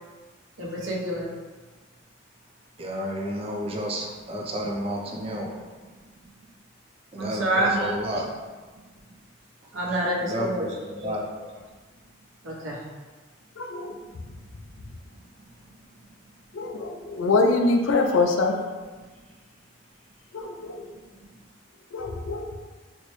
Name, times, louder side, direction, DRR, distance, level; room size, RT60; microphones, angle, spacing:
voice 1, 0.6-1.3 7.2-8.0 9.7-10.7 11.0-11.2 12.4-12.8 20.9-21.0, right 1 dB, 85° right, -4 dB, 0.9 m, -27 dB
voice 2, 2.8-5.5 7.1-8.3 10.2-11.2, equal, 30° right, -1 dB, 0.4 m, -31 dB
voice 3, 13.6-14.0 16.5-18.6 20.3-20.9 21.9-22.5, left 3 dB, 75° left, 3 dB, 0.4 m, -24 dB
4.2 x 2.1 x 3.1 m, 1.3 s
head